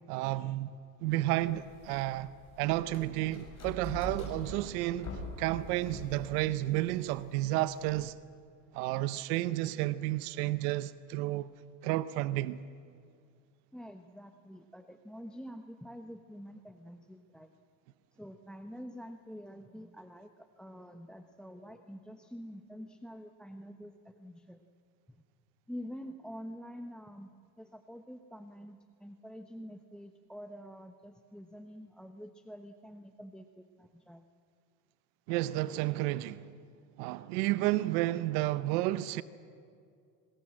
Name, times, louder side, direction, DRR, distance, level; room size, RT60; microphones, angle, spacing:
voice 1, 0.1-0.7 1.0-2.3 2.6-8.1 8.7-11.5 11.8-12.6 35.3-36.5 37.0-39.2, right 16 dB, 80° right, 0.8 m, -31 dB
sound 1, 1.4-8.0, left 1 dB, 35° left, 7.4 m, -45 dB
voice 2, 13.7-17.5 18.1-24.6 25.1-25.2 25.7-34.2, equal, ahead, 1.0 m, -47 dB
27.0 x 20.5 x 7.7 m
supercardioid pair, 95°, 45 cm